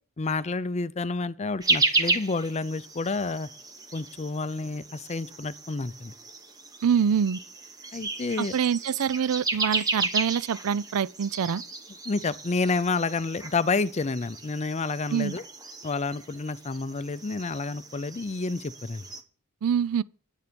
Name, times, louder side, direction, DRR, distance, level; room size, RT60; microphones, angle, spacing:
voice 1, 0.2-3.5 3.9-6.1 7.9-8.5 12.1-15.4 15.8-19.0, left 3 dB, 30° left, 0.5 m, -29 dB
sound 1, 1.6-19.2, right 3 dB, 15° right, 1.1 m, -33 dB
voice 2, 6.8-7.4 8.4-11.6 15.1-15.3 19.6-20.0, right 7 dB, 75° right, 0.4 m, -25 dB
9.7 x 9.2 x 5.2 m
head